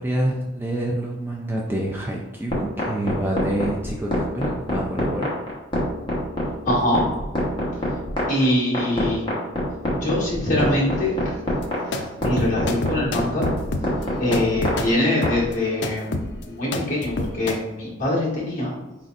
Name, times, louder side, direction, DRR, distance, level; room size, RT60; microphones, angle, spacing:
voice 1, 0.0-5.3, right 1 dB, 10° right, -1 dB, 0.3 m, -27 dB
sound 1, 2.5-15.3, left 1 dB, 25° left, 1.0 m, -25 dB
voice 2, 6.6-7.1 8.3-9.3 9.9-11.2 12.2-13.5 14.2-18.7, left 1 dB, 40° left, -5 dB, 1.5 m, -23 dB
sound 2, 11.5-17.6, left 2 dB, 60° left, 0.4 m, -29 dB
4.3 x 3.9 x 2.5 m, 1.0 s
head